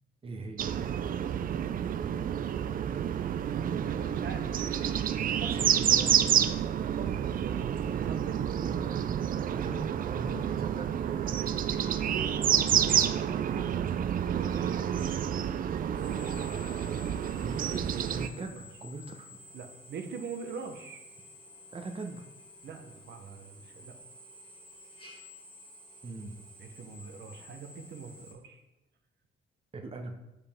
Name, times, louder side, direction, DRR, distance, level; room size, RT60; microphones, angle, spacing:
voice 1, 0.2-0.9 5.5-6.3 8.6-9.0 9.5-10.9 12.6-12.9 17.4-19.3 21.7-22.3 26.0-26.4 29.7-30.1, right 3 dB, 30° right, 3 dB, 0.8 m, -41 dB
sound 1, 0.6-18.3, right 9 dB, 45° right, 0.4 m, -29 dB
voice 2, 3.6-4.5 5.3-5.6 6.8-7.2 7.4-8.5 9.4-9.7 11.2-12.3 12.6-14.8 18.2-18.6 19.5-21.0 22.6-23.9 26.6-28.6, right 5 dB, 65° right, 5 dB, 1.0 m, -43 dB
Drill, 11.0-28.3, left 2 dB, 25° left, 1.9 m, -53 dB
6.6 x 5.4 x 3.6 m, 0.94 s
cardioid pair, 90°, 20 cm